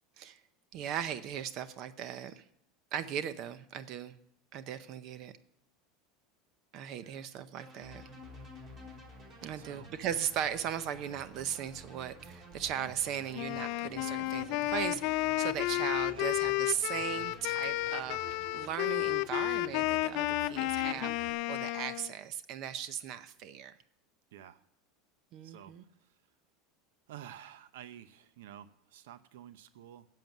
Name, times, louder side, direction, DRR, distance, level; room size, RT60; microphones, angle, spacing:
voice 1, 0.7-2.4 2.9-4.1 4.5-5.3 6.7-8.0 9.4-23.7 25.3-25.8, right 9 dB, 50° right, 13 dB, 0.7 m, -38 dB
sound 1, 7.6-21.3, right 1 dB, 30° right, 3.7 m, -51 dB
voice 2, 9.6-9.9 16.1-16.3 24.3-24.6 25.4-26.2 27.1-30.1, right 10 dB, 85° right, 14 dB, 0.6 m, -51 dB
Wind instrument woodwind instrument, 13.3-22.1, left 18 dB, 55° left, 0.4 m, -32 dB
10.5 x 7.6 x 9.1 m, 0.74 s
supercardioid pair, 140°, 0 cm